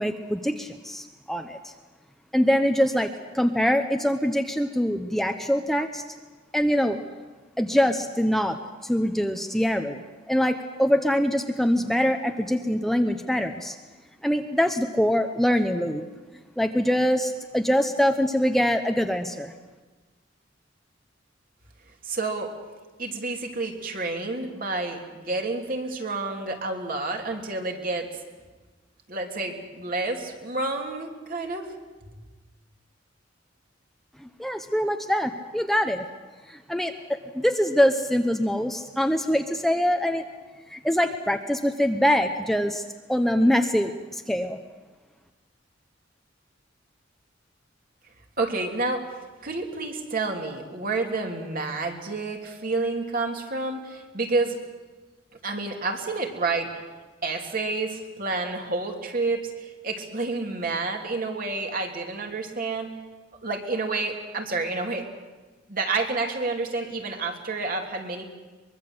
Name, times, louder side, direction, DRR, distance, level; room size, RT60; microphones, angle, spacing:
voice 1, 0.0-1.7 2.3-6.0 6.5-7.0 7.6-8.6 8.8-13.8 14.2-16.0 16.6-19.5 34.2-36.0 36.5-40.2 40.7-42.8 43.1-44.6, equal, ahead, 5 dB, 0.9 m, -24 dB
voice 2, 22.0-22.5 23.0-28.1 29.1-31.7 48.4-49.0 49.4-54.6 55.4-56.7 57.2-62.9 63.4-65.1 65.7-68.3, right 3 dB, 50° right, 2 dB, 3.1 m, -29 dB
23.5 x 22.5 x 8.0 m, 1.3 s
head